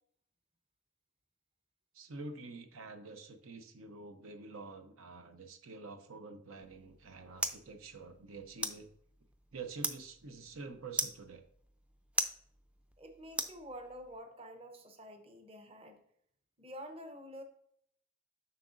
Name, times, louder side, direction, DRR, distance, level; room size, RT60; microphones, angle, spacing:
voice 1, 1.9-8.9 9.5-11.4, right 3 dB, 85° right, 7 dB, 0.7 m, -47 dB
sound 1, 6.6-14.2, right 1 dB, 5° right, 0.4 m, -41 dB
voice 2, 13.0-16.0 16.6-17.4, equal, 30° right, 5 dB, 0.8 m, -48 dB
7.6 x 5.8 x 2.5 m, 0.66 s
head